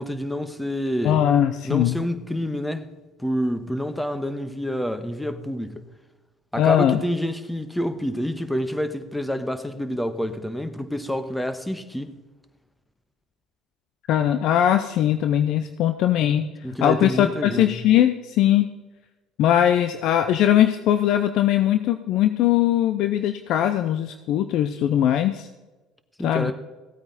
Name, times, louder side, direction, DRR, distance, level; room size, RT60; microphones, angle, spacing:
voice 1, 0.0-1.2 1.6-2.9 3.2-5.8 6.5-12.2 16.6-17.8 26.2-26.5, equal, 5° left, 1.3 m, -28 dB
voice 2, 1.0-2.0 6.6-7.0 14.1-16.5 16.8-18.7 19.4-25.5 26.2-26.5, left 11 dB, 65° left, 0.6 m, -20 dB
15.5 x 8.8 x 4.2 m
hypercardioid pair, 75°, 0 cm